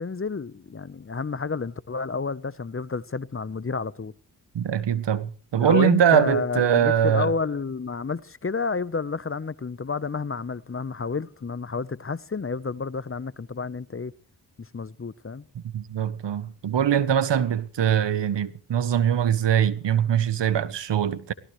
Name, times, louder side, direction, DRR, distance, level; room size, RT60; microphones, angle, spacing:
voice 1, 0.0-4.1 5.6-14.1 14.6-15.4, left 4 dB, 30° left, 1.0 m, -30 dB
voice 2, 4.5-7.3 15.5-21.3, right 9 dB, 75° right, 1.3 m, -22 dB
24.0 x 17.0 x 3.2 m
cardioid pair, 50°, 43 cm